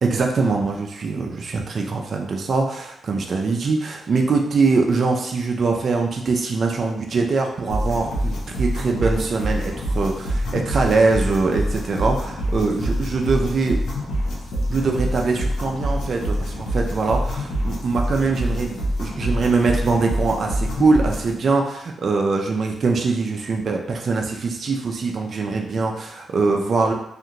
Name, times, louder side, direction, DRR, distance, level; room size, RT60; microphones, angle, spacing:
voice 1, 0.0-13.8 14.7-26.9, right 4 dB, 55° right, 1 dB, 0.4 m, -22 dB
sound 1, 7.7-21.3, equal, 80° left, 0.7 m, -26 dB
2.5 x 2.4 x 2.8 m, 0.75 s
cardioid pair, 80°, 0 cm